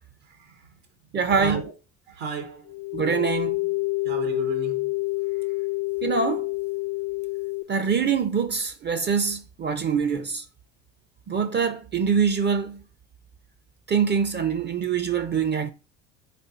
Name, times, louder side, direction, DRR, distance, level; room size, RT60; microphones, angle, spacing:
voice 1, 0.2-0.7 1.4-1.7 2.1-2.7 4.0-5.0 5.3-5.5, right 6 dB, 70° right, 1.1 m, -34 dB
voice 2, 1.1-1.6 2.9-3.6 6.0-6.5 7.7-10.4 11.3-12.8 13.9-15.7, right 6 dB, 25° right, 0.5 m, -24 dB
sound 1, 2.7-7.6, left 23 dB, 75° left, 0.6 m, -28 dB
3.9 x 3.3 x 3.8 m
hypercardioid pair, 65°, 39 cm